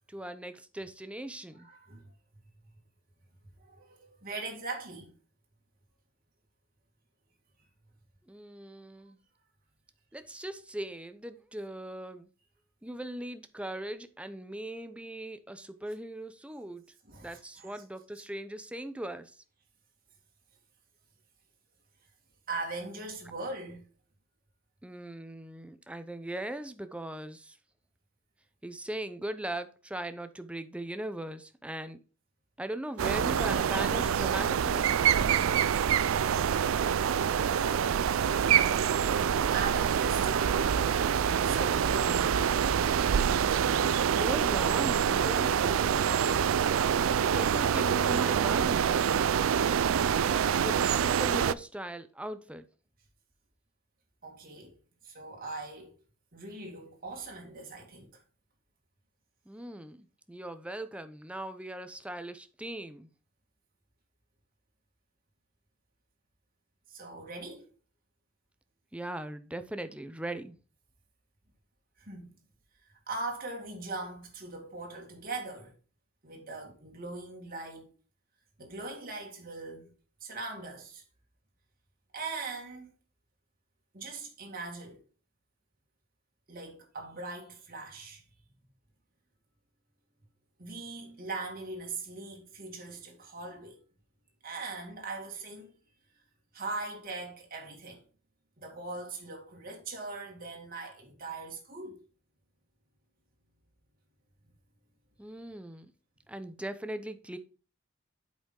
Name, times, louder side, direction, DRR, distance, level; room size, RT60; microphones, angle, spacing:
voice 1, 0.1-1.7 8.3-9.2 10.1-12.3 12.8-16.8 17.2-19.4 24.8-27.6 28.6-32.0 32.6-34.9 44.2-46.2 47.4-49.0 50.5-52.7 59.5-63.1 68.9-70.6 105.2-105.9 106.3-107.4, right 1 dB, 5° right, 0.6 m, -39 dB
voice 2, 1.5-2.1 3.6-5.1 17.0-17.8 22.5-23.9 35.7-39.1 39.5-40.7 41.4-42.6 54.2-56.0 56.3-58.2 66.9-67.7 72.0-72.3 72.9-75.7 76.2-77.9 78.6-79.9 80.2-81.0 82.1-82.9 83.9-85.0 86.5-88.2 90.6-93.8 94.4-95.7 96.5-98.0 98.6-102.0, right 3 dB, 45° right, 2.2 m, -41 dB
sound 1, 33.0-51.5, right 8 dB, 70° right, 0.4 m, -26 dB
sound 2, 33.8-42.2, right 1 dB, 25° right, 3.4 m, -48 dB
8.4 x 5.3 x 3.8 m
head